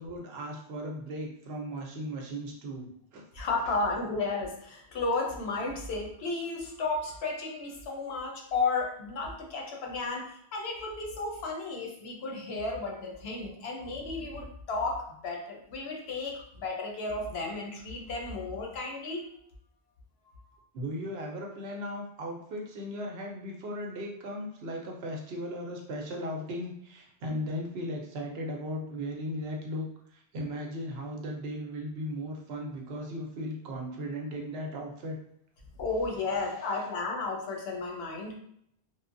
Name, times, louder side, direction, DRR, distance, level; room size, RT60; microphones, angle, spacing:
voice 1, 0.0-3.2 20.7-35.2, equal, 75° right, 0 dB, 0.9 m, -37 dB
voice 2, 3.3-19.2 35.8-38.4, left 3 dB, 80° left, 0 dB, 0.9 m, -33 dB
3.0 x 2.1 x 2.5 m, 0.70 s
omnidirectional pair, 1.0 m